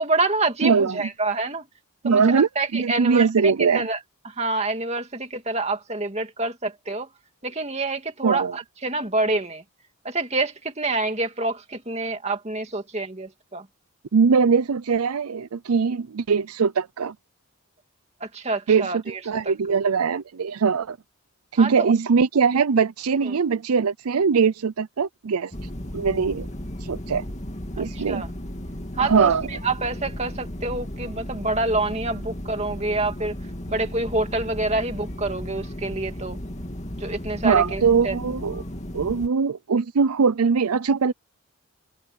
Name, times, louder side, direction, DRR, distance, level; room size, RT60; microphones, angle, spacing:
voice 1, 0.0-1.6 2.0-4.0 4.2-7.1 7.4-9.6 10.0-13.7 18.2-19.2 19.4-19.5 21.6-21.9 23.2-23.4 27.8-28.3 28.9-33.3 33.7-36.4 36.9-38.2, right 2 dB, 30° right, 2.3 m, -27 dB
voice 2, 0.6-1.1 2.0-3.9 8.2-8.6 14.1-17.1 18.7-21.0 21.5-25.5 25.9-26.5 26.8-27.3 27.8-28.2 29.0-29.5 37.4-38.6 38.9-41.1, right 5 dB, 85° right, 0.5 m, -21 dB
sound 1, 25.5-39.3, equal, 30° left, 2.3 m, -35 dB
head